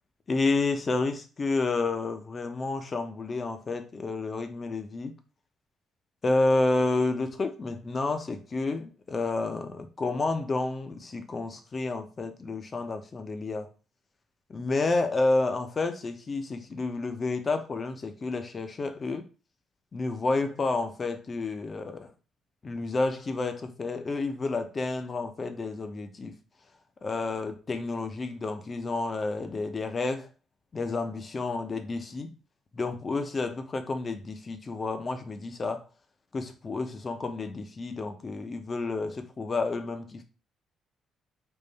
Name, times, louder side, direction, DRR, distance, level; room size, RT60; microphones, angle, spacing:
voice 1, 0.3-5.1 6.2-13.7 14.5-19.3 19.9-22.1 22.6-26.3 27.0-30.3 30.7-32.3 32.7-35.8 36.3-40.2, left 3 dB, 35° left, 0.7 m, -30 dB
3.8 x 2.6 x 4.0 m
cardioid pair, 95°, 0 cm